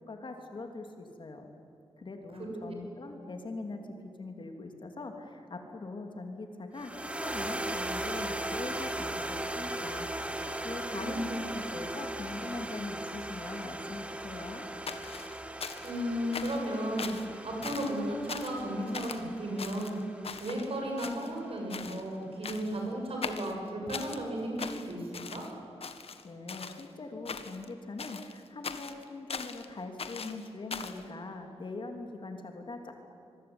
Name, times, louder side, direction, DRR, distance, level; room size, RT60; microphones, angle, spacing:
voice 1, 0.1-1.4 2.0-3.8 4.2-14.7 26.2-32.9, left 3 dB, 50° left, 4 dB, 3.1 m, -42 dB
sound 1, 6.8-21.2, right 1 dB, 10° right, 1.5 m, -38 dB
voice 2, 10.9-11.3 15.8-25.4, equal, 60° right, 0 dB, 7.6 m, -34 dB
sound 2, 14.9-16.0 16.3-16.7 17.0-17.3 17.6-18.0 18.3-18.6 18.9-19.2 19.6-20.7 21.0-21.5 21.7-22.0 22.4-22.8 23.2-24.2 24.6-25.5 25.8-26.9 27.3-27.7 28.0-29.7 30.0-31.0, left 5 dB, 65° left, 1.6 m, -40 dB
26.0 x 23.0 x 9.8 m, 2.6 s
wide cardioid pair, 170°, 11 cm